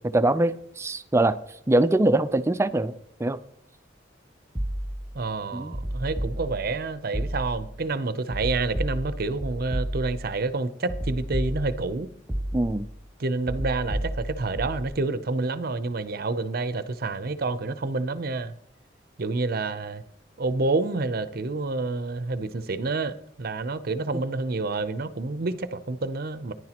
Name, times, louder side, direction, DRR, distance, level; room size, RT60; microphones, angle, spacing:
voice 1, 0.1-1.4 1.7-2.9 3.2-3.4 5.5-5.7 12.5-12.9, right 2 dB, 15° right, 0.4 m, -22 dB
sound 1, 4.5-5.2 5.7-6.8 7.1-7.8 8.3-10.3 10.9-11.9 12.3-12.9 13.5-14.9, equal, 5° left, 1.6 m, -31 dB
voice 2, 5.1-12.1 13.2-18.5 19.2-20.0 20.4-26.5, right 3 dB, 55° right, 0.6 m, -28 dB
14.5 x 10.5 x 2.9 m
head